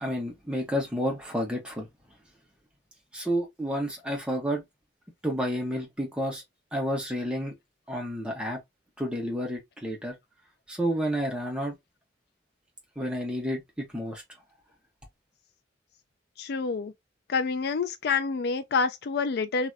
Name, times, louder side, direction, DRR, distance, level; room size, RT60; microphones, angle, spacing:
voice 1, 0.0-1.9 3.1-4.6 5.2-6.4 6.7-7.5 7.9-8.6 9.0-10.1 10.7-11.7 12.9-14.2, equal, 5° right, 1.3 m, -30 dB
voice 2, 16.4-16.9 17.3-19.7, left 4 dB, 60° left, 0.4 m, -27 dB
2.9 x 2.8 x 2.3 m
head